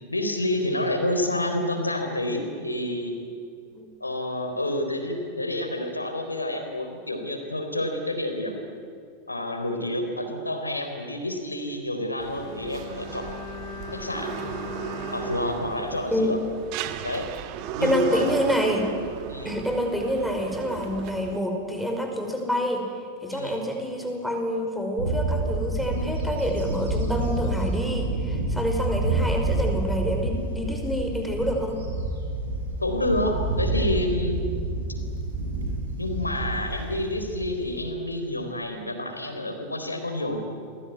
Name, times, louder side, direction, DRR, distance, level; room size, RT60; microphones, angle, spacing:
voice 1, 0.1-3.1 4.0-8.6 9.3-13.3 13.9-14.3 15.1-16.4 17.0-17.3 17.8-18.4 19.3-19.5 23.3-23.7 32.8-34.4 34.9-35.0 36.0-40.4, left 1 dB, 85° left, 5 dB, 3.9 m, -29 dB
sound 1, 12.2-21.4, right 10 dB, 45° right, 1.7 m, -36 dB
Bowed string instrument, 12.4-16.8 17.1-17.2, left 7 dB, 55° left, 6.0 m, -40 dB
voice 2, 17.8-18.9 19.4-22.9 23.2-31.8, equal, ahead, 2 dB, 5.3 m, -27 dB
Bird / Wind, 25.0-37.8, right 2 dB, 65° right, 7.7 m, -28 dB
29.0 x 21.5 x 9.5 m, 2.3 s
figure-of-eight pair, 90°, 0 cm